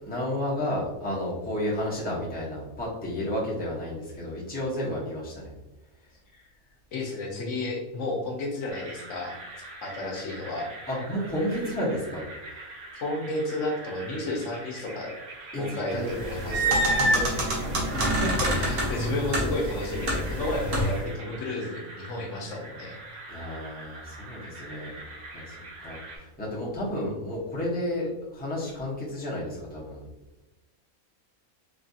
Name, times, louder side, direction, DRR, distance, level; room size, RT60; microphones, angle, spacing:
voice 1, 0.0-5.5 10.9-12.2 15.5-17.5 23.3-25.0 25.3-30.0, left 1 dB, 10° left, -6 dB, 0.4 m, -32 dB
voice 2, 6.9-9.4 9.8-10.7 12.9-15.1 15.6-16.8 17.9-23.0 27.0-27.2, left 2 dB, 65° left, 0 dB, 0.9 m, -32 dB
sound 1, 8.7-26.2, right 2 dB, 75° right, 1.2 m, -44 dB
sound 2, 16.1-21.1, right 1 dB, 55° right, 0.8 m, -26 dB
3.2 x 2.3 x 2.6 m, 1.0 s
omnidirectional pair, 1.6 m